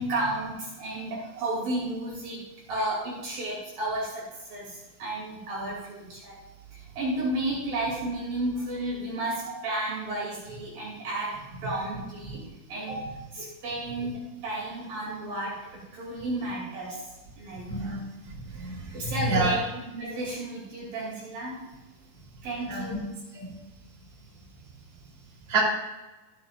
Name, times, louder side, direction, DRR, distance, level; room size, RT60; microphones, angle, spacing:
voice 1, 0.0-2.4 2.7-6.4 6.7-12.4 12.7-17.0 17.4-17.9 18.9-21.6 22.4-23.0, right 1 dB, 50° right, -5 dB, 4.0 m, -33 dB
voice 2, 17.7-18.0 18.5-19.6 22.7-23.0 23.3-23.5 25.5-25.6, right 3 dB, 20° right, -5 dB, 3.1 m, -28 dB
14.0 x 10.0 x 2.5 m, 1.1 s
omnidirectional pair, 5.4 m